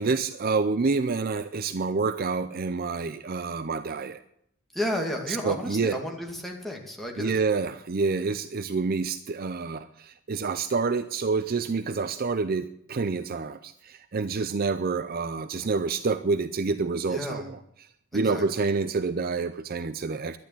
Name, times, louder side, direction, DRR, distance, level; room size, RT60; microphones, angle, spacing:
voice 1, 0.0-4.2 5.3-6.0 7.2-17.6 18.1-20.4, right 4 dB, 45° right, 12 dB, 0.5 m, -28 dB
voice 2, 4.7-7.4 17.1-17.5 18.1-18.7, left 1 dB, ahead, 0 dB, 2.4 m, -33 dB
12.0 x 10.5 x 8.9 m, 0.73 s
head